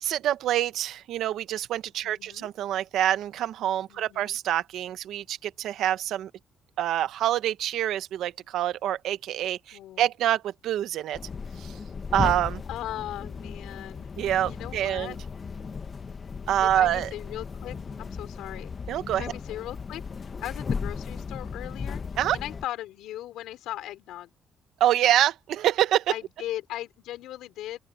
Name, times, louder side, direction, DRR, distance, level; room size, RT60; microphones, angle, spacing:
voice 1, 0.0-6.3 6.8-11.2 11.6-11.8 12.1-12.6 14.2-15.1 16.5-17.1 18.9-19.3 22.2-22.4 24.8-26.1, right 12 dB, 80° right, 1.1 m, -26 dB
voice 2, 2.0-2.5 3.9-4.4 9.7-10.1 12.7-14.1 14.5-15.2 16.6-18.7 19.1-20.0 20.4-22.0 22.3-24.3 26.1-27.8, left 13 dB, 90° left, 4.4 m, -38 dB
sound 1, 11.1-22.6, left 5 dB, 40° left, 1.3 m, -36 dB
open air
cardioid pair, 90°, 0 cm